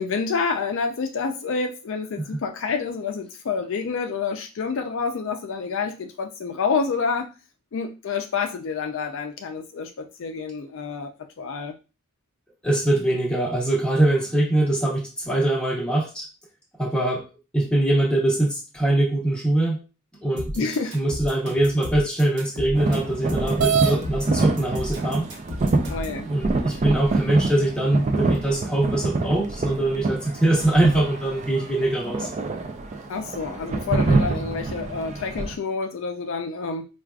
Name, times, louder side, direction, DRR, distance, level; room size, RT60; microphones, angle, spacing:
voice 1, 0.0-7.3 7.7-11.1 11.4-11.7 20.6-20.9 25.9-26.3 33.1-36.9, left 5 dB, 60° left, 5 dB, 0.4 m, -28 dB
voice 2, 12.6-16.3 16.8-17.3 17.5-19.8 20.2-25.3 26.2-32.3, right 1 dB, 5° left, -3 dB, 0.9 m, -22 dB
sound 1, 20.4-26.2, left 1 dB, 50° right, 1.0 m, -33 dB
sound 2, 22.8-35.6, right 3 dB, 30° right, 0.3 m, -27 dB
sound 3, 23.6-24.0 25.0-25.1 25.7-25.8 26.4-27.1, right 6 dB, 75° right, 0.6 m, -24 dB
4.6 x 2.3 x 2.3 m, 0.30 s
head